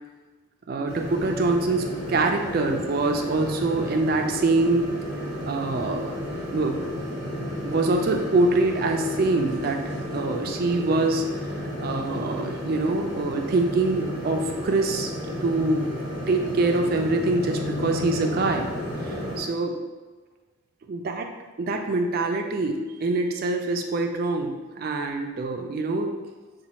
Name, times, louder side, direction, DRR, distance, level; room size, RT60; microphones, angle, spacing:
voice 1, 0.7-5.0 5.5-6.1 6.5-6.8 7.6-11.3 11.6-15.1 15.4-15.9 16.3-18.7 19.0-19.7 20.9-26.2, right 2 dB, 45° right, 4 dB, 0.3 m, -25 dB
sound 1, 0.9-19.4, left 1 dB, 70° left, 1.5 m, -32 dB
4.1 x 2.2 x 2.8 m, 1.3 s
head